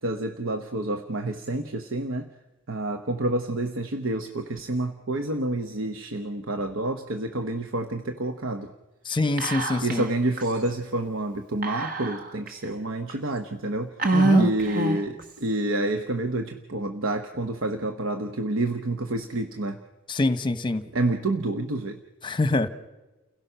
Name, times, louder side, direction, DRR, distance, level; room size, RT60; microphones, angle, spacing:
voice 1, 0.0-2.3 2.7-8.7 9.8-13.9 14.3-19.8 20.9-22.0, right 2 dB, 85° right, 7 dB, 1.0 m, -28 dB
voice 2, 9.1-10.0 14.1-14.4 20.1-20.8 22.2-22.7, left 2 dB, 25° left, 12 dB, 1.0 m, -25 dB
Whispering, 9.4-10.1 10.4-10.5 11.6-12.5 13.1-13.2 14.0-15.2, right 3 dB, 45° right, 1.4 m, -24 dB
30.0 x 17.0 x 5.7 m, 1.1 s
head